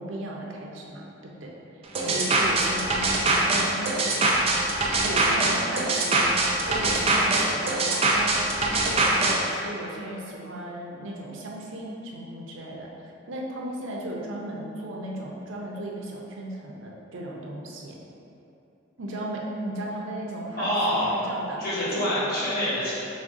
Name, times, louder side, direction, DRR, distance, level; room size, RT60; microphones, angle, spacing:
voice 1, 0.0-1.5 2.0-4.4 5.0-6.3 6.7-8.5 8.7-12.9 13.3-18.0 19.0-21.6 21.9-22.0, right 1 dB, 85° right, -2 dB, 0.7 m, -35 dB
sound 1, 2.0-9.4, right 2 dB, 30° right, 0.5 m, -23 dB
voice 2, 20.6-21.1 21.6-23.0, equal, 50° left, -9 dB, 1.3 m, -26 dB
5.1 x 3.5 x 2.6 m, 2.7 s
head